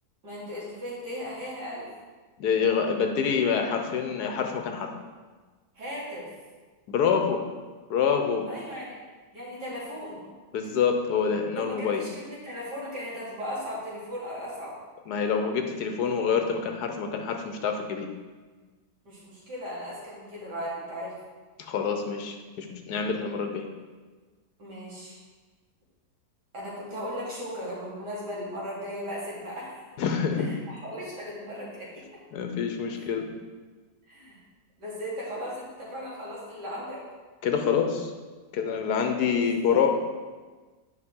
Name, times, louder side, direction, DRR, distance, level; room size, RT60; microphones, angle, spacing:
voice 1, 0.2-1.9 5.8-6.3 8.5-8.9 9.3-10.2 11.6-14.7 19.0-21.2 24.6-25.2 26.5-29.8 30.4-32.0 33.0-33.1 34.1-34.4 34.8-37.0 39.4-39.9, equal, 80° right, -7 dB, 2.9 m, -37 dB
voice 2, 2.4-4.9 6.9-7.4 7.9-8.5 10.5-12.0 15.1-18.1 21.6-23.7 30.0-30.5 32.3-33.3 37.4-38.1 38.5-39.9, left 6 dB, 75° left, 4 dB, 1.3 m, -26 dB
9.5 x 5.6 x 3.7 m, 1.4 s
omnidirectional pair, 1.8 m